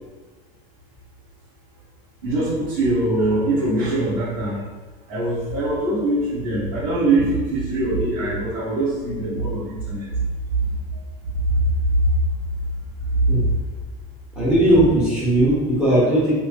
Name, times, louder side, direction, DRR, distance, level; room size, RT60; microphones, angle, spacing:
voice 1, 2.2-4.6 5.1-10.1, right 2 dB, 60° right, -10 dB, 1.1 m, -22 dB
voice 2, 14.3-16.3, right 1 dB, 5° right, -10 dB, 1.1 m, -17 dB
3.1 x 3.0 x 2.8 m, 1.3 s
cardioid pair, 180°, 19 cm